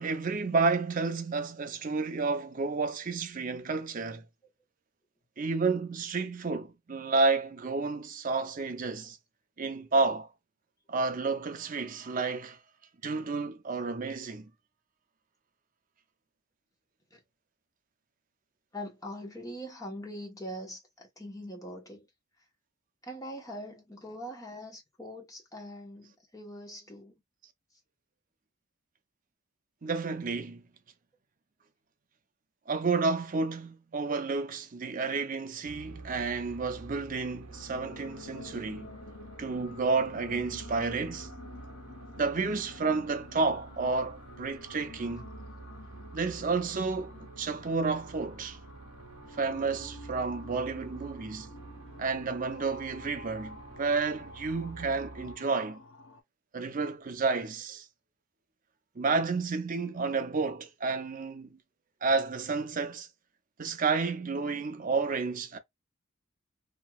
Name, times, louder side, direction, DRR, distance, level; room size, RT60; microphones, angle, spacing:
voice 1, 0.0-4.3 5.4-9.2 9.6-10.3 10.9-12.6 13.0-14.5 29.8-30.6 32.7-38.9 39.4-41.3 42.2-45.3 46.1-48.6 49.4-51.5 52.0-55.8 56.5-57.9 59.0-61.6 62.0-63.1 63.6-65.6, right 4 dB, 40° right, 0.5 m, -31 dB
voice 2, 18.7-22.1 23.0-27.1, equal, 15° left, 1.0 m, -42 dB
sound 1, 35.6-55.4, right 3 dB, 90° right, 0.8 m, -48 dB
sound 2, 37.5-56.2, left 3 dB, 60° left, 0.6 m, -50 dB
2.9 x 2.7 x 2.3 m
head